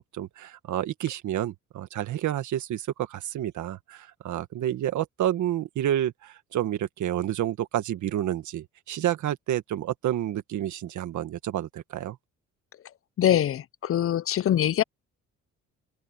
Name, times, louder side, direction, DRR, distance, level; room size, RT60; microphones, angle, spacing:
voice 1, 0.0-12.2, right 12 dB, 75° right, 1.7 m, -29 dB
voice 2, 13.2-14.8, left 11 dB, 50° left, 0.5 m, -23 dB
cardioid pair, 90°, 30 cm